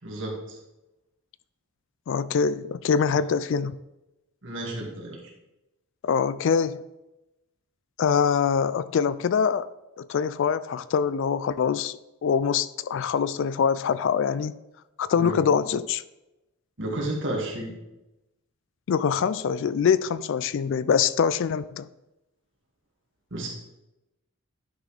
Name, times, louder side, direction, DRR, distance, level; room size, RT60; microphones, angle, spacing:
voice 1, 0.0-0.6 3.1-3.2 4.4-5.2 15.2-15.4 16.8-17.7 23.3-23.5, right 1 dB, 55° right, -1 dB, 2.1 m, -32 dB
voice 2, 2.1-3.7 6.0-6.8 8.0-9.7 10.0-14.5 15.0-16.0 18.9-21.9, left 6 dB, 55° left, 16 dB, 0.3 m, -24 dB
10.5 x 6.1 x 3.4 m, 0.96 s
head